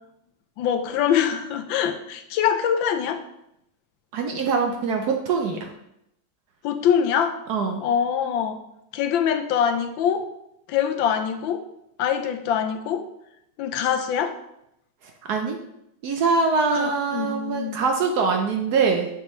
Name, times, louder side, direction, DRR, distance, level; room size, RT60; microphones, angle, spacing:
voice 1, 0.6-3.2 6.6-7.4 7.8-8.6 8.9-10.3 10.7-11.6 12.0-13.0 13.6-14.3 16.7-17.8, left 8 dB, 80° left, 7 dB, 1.4 m, -24 dB
voice 2, 4.1-5.7 7.5-7.8 15.2-15.6 16.0-19.1, right 4 dB, 65° right, 3 dB, 1.1 m, -23 dB
6.1 x 6.1 x 3.1 m, 0.80 s
omnidirectional pair, 2.1 m